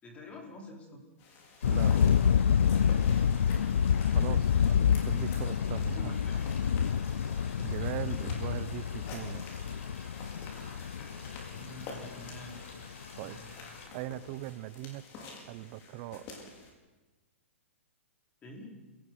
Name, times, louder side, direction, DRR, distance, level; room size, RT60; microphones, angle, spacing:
voice 1, 0.0-1.0 4.2-4.8 5.9-6.7 11.5-12.7 13.2-13.6 18.4-18.8, left 1 dB, 15° left, 1 dB, 4.8 m, -48 dB
sound 1, 1.2-16.7, left 3 dB, 35° left, 5.3 m, -50 dB
sound 2, 1.6-13.2, left 8 dB, 85° left, 0.6 m, -28 dB
sound 3, 1.6-13.9, left 3 dB, 70° left, 7.7 m, -50 dB
voice 2, 4.1-6.2 7.6-9.5 13.2-13.4 13.9-16.3, right 15 dB, 40° right, 16 dB, 1.0 m, -40 dB
29.0 x 18.0 x 6.4 m, 1.2 s
hypercardioid pair, 150°, 7 cm